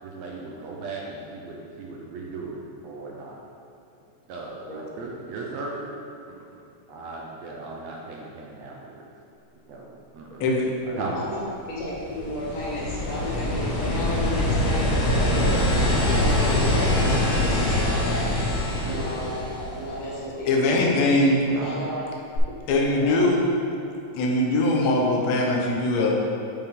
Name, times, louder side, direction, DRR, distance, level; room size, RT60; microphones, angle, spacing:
voice 1, 0.0-3.3 4.3-5.9 6.3-6.4 6.9-9.1 9.7-9.9 10.1-10.5 10.9-11.1 18.8-19.0 21.5-21.7, right 3 dB, 70° right, -2 dB, 1.8 m, -37 dB
voice 2, 10.9-11.4 11.7-18.6 18.8-21.0 21.5-22.0 23.0-23.2, left 1 dB, 35° left, -7 dB, 1.5 m, -33 dB
sound 1, 11.7-20.2 22.4-22.5, left 1 dB, 55° left, 1.8 m, -24 dB
voice 3, 20.5-21.4 22.7-23.4 24.2-26.1, left 2 dB, 70° left, -1 dB, 2.0 m, -21 dB
8.0 x 5.0 x 3.7 m, 2.7 s
omnidirectional pair, 3.4 m